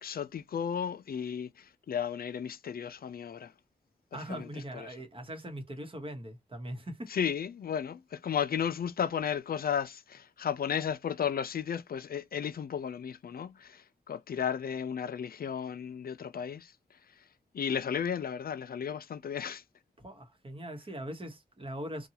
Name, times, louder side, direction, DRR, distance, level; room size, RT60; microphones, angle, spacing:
voice 1, 0.0-3.5 4.3-4.5 4.7-4.9 7.1-16.7 17.5-19.6, left 8 dB, 65° left, 0.4 m, -34 dB
voice 2, 4.1-7.1 20.0-22.1, right 1 dB, 35° right, 1.0 m, -41 dB
2.8 x 2.3 x 2.8 m
wide cardioid pair, 90°, 17 cm